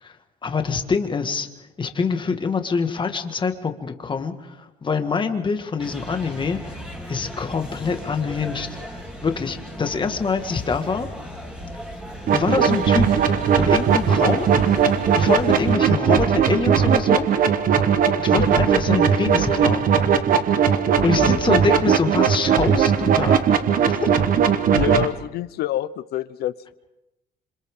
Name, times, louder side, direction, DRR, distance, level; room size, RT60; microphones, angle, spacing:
voice 1, 0.4-1.5 1.8-6.8 7.1-9.0 9.2-11.1 12.3-13.2 13.6-14.5 15.2-17.3 18.2-19.9 21.0-23.6 23.9-24.1, left 5 dB, 30° left, 6 dB, 1.8 m, -25 dB
sound 1, 5.8-15.8, equal, 5° right, 4.0 m, -37 dB
sound 2, 12.3-25.1, right 7 dB, 55° right, 1.2 m, -19 dB
voice 2, 24.7-26.7, left 13 dB, 70° left, 17 dB, 0.8 m, -27 dB
27.0 x 26.0 x 3.8 m, 0.94 s
cardioid pair, 110°, 17 cm